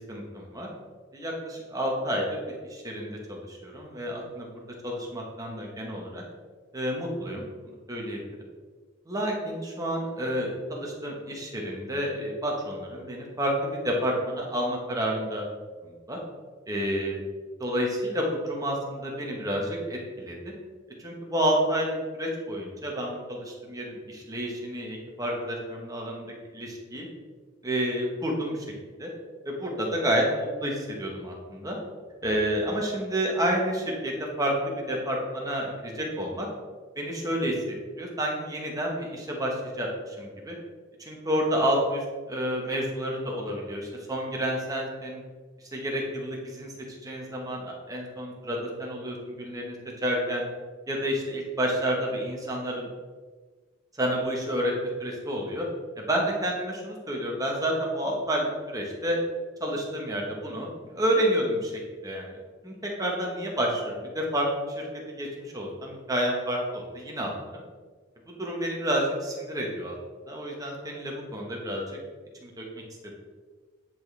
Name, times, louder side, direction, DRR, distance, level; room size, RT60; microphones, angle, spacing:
voice 1, 0.1-0.7 1.1-4.5 4.8-6.2 6.7-7.4 7.9-8.2 9.1-15.4 16.1-16.2 16.7-17.2 17.6-20.5 21.0-27.1 27.6-28.6 29.0-29.1 29.4-31.8 32.2-34.5 34.9-36.5 37.0-40.5 41.0-42.0 42.3-45.2 45.7-46.7 47.0-49.7 50.0-50.5 50.9-52.9 54.0-54.7 55.0-55.6 56.0-59.2 59.6-61.7 62.0-62.4 62.6-64.8 65.2-67.6 68.3-70.0 70.3-71.8 72.4-72.6, equal, 20° right, -1 dB, 1.3 m, -29 dB
10.0 x 4.2 x 3.4 m, 1.5 s
head